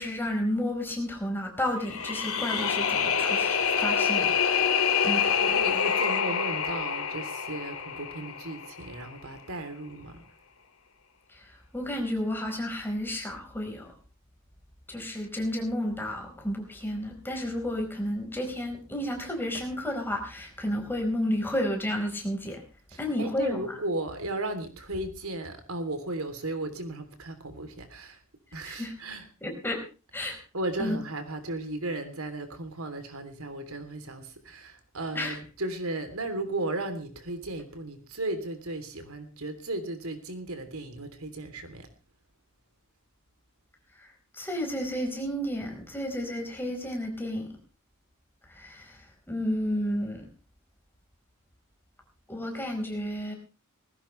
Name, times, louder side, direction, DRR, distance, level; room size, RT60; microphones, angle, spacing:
voice 1, 0.0-4.3 5.0-5.3 11.3-13.9 14.9-22.6 23.0-23.7 28.7-28.9 29.4-29.8 30.1-30.4 30.8-31.0 35.1-35.3 44.0-44.1 44.3-47.5 48.5-49.0 49.3-50.2 52.3-53.3, left 1 dB, 10° left, 2 dB, 4.7 m, -31 dB
sound 1, 1.8-8.9, left 7 dB, 85° left, 2.6 m, -26 dB
voice 2, 5.3-10.2 22.9-28.2 28.5-29.3 30.5-41.9, right 2 dB, 90° right, 8 dB, 3.3 m, -35 dB
20.0 x 16.0 x 3.3 m, 0.34 s
head